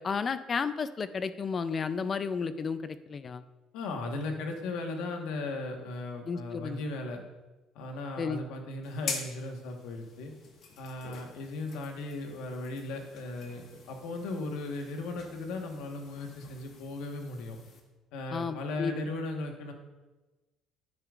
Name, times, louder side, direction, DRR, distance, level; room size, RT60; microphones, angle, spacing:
voice 1, 0.0-3.4 6.3-6.8 8.2-8.4 18.3-18.9, left 5 dB, 30° left, 13 dB, 0.4 m, -32 dB
voice 2, 3.7-7.2 7.7-10.3 10.8-17.6 18.1-19.7, left 2 dB, 85° left, 3 dB, 1.3 m, -37 dB
sound 1, 8.8-17.8, left 5 dB, 55° left, 1.4 m, -45 dB
10.0 x 9.7 x 2.5 m, 1.1 s
cardioid pair, 140°, 0 cm